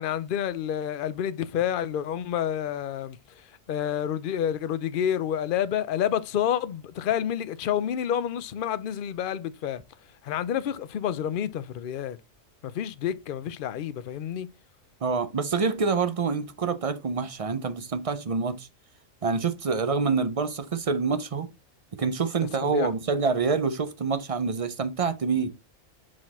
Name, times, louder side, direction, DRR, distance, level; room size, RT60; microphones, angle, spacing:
voice 1, 0.0-9.8 10.2-12.2 12.6-14.5 22.6-22.9, left 9 dB, 55° left, 0.6 m, -29 dB
voice 2, 15.0-18.7 19.2-21.5 21.9-25.5, right 5 dB, 40° right, 0.5 m, -26 dB
5.9 x 4.9 x 4.1 m
omnidirectional pair, 1.4 m